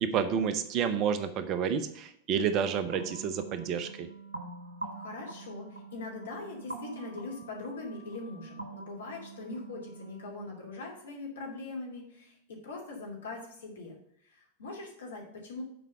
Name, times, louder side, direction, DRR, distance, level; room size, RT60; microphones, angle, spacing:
voice 1, 0.0-4.1, right 7 dB, 35° right, 10 dB, 0.8 m, -30 dB
sound 1, 2.9-10.5, right 3 dB, 75° right, 1.2 m, -45 dB
voice 2, 4.9-14.0 14.3-15.6, left 3 dB, 65° left, -1 dB, 2.7 m, -42 dB
7.2 x 4.7 x 6.7 m, 0.72 s
figure-of-eight pair, 90°, 0 cm